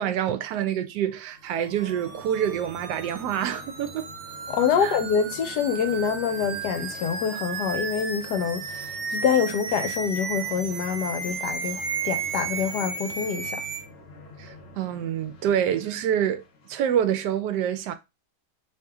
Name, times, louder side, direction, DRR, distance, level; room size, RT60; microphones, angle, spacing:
voice 1, 0.0-4.1 4.8-5.0 14.4-16.4 16.7-17.9, right 9 dB, 80° right, 1.1 m, -27 dB
sound 1, 1.1-16.9, left 2 dB, 55° left, 0.7 m, -47 dB
sound 2, 1.6-13.8, right 5 dB, 60° right, 0.7 m, -34 dB
voice 2, 4.5-13.6, left 7 dB, 75° left, 1.3 m, -26 dB
3.1 x 2.8 x 3.4 m
omnidirectional pair, 1.8 m